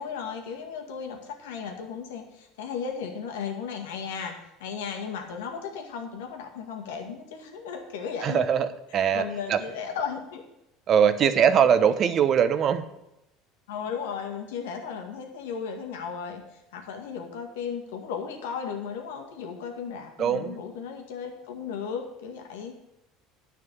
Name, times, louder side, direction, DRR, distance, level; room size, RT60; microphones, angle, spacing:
voice 1, 0.0-4.4 4.6-8.7 9.1-10.4 11.2-11.4 13.7-16.4 16.7-22.8, left 6 dB, 85° left, 3 dB, 2.0 m, -35 dB
voice 2, 8.2-9.2 9.5-9.6 10.9-12.8 20.2-20.6, right 8 dB, 45° right, 12 dB, 1.0 m, -21 dB
10.5 x 5.9 x 8.0 m, 0.89 s
supercardioid pair, 90°, 0 cm